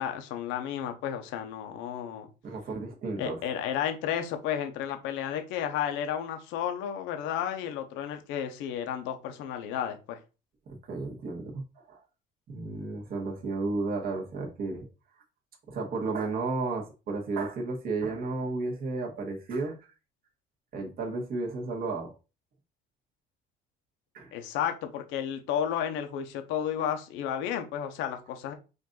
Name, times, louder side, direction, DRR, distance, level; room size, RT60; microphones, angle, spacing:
voice 1, 0.0-2.3 3.2-10.2 24.3-28.5, left 9 dB, 85° left, 0.9 m, -32 dB
voice 2, 2.4-3.4 10.7-12.0 12.5-14.9 15.7-19.8 20.7-22.1 24.1-24.3 26.9-27.0, right 3 dB, 50° right, 1.4 m, -33 dB
5.2 x 2.6 x 3.8 m
cardioid pair, 105°, 19 cm